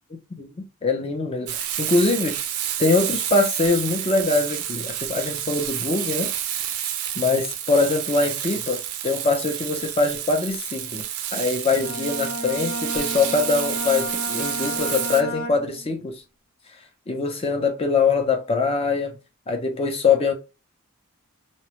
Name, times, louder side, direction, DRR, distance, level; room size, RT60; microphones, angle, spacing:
voice 1, 0.8-2.4 2.8-6.3 7.2-11.0 11.3-16.2 17.1-19.1 19.5-20.3, left 4 dB, 25° left, 0.4 m, -23 dB
Frying (food), 1.5-15.2, right 10 dB, 90° right, 0.4 m, -29 dB
Bowed string instrument, 11.7-16.0, equal, 80° left, 0.9 m, -32 dB
2.2 x 2.0 x 2.8 m
head